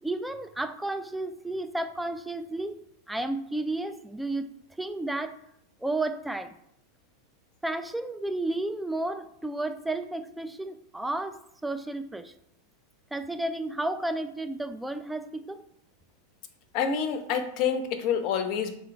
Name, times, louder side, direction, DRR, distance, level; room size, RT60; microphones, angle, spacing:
voice 1, 0.0-2.8 3.1-4.5 4.8-5.4 5.8-6.5 7.6-12.3 13.1-15.6, right 2 dB, 5° right, 9 dB, 0.3 m, -32 dB
voice 2, 16.7-18.8, left 7 dB, 40° left, 8 dB, 0.6 m, -27 dB
3.7 x 3.2 x 4.3 m, 0.74 s
figure-of-eight pair, 90°, 0 cm